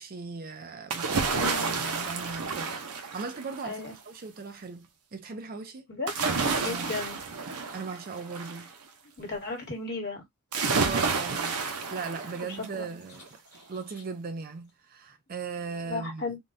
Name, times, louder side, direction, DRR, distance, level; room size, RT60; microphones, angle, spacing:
voice 1, 0.0-5.9 6.6-7.0 7.7-8.7 10.8-13.4 13.7-16.4, right 4 dB, 40° right, 0.4 m, -38 dB
sound 1, 0.9-3.7 6.1-8.7 10.5-12.8 13.2-13.3, right 4 dB, 80° right, 0.7 m, -30 dB
voice 2, 1.3-1.8 3.6-4.0 5.9-6.1 6.6-7.2 9.2-10.2 12.7-12.8 15.8-16.4, left 3 dB, 50° left, 1.3 m, -35 dB
3.5 x 2.2 x 2.5 m
head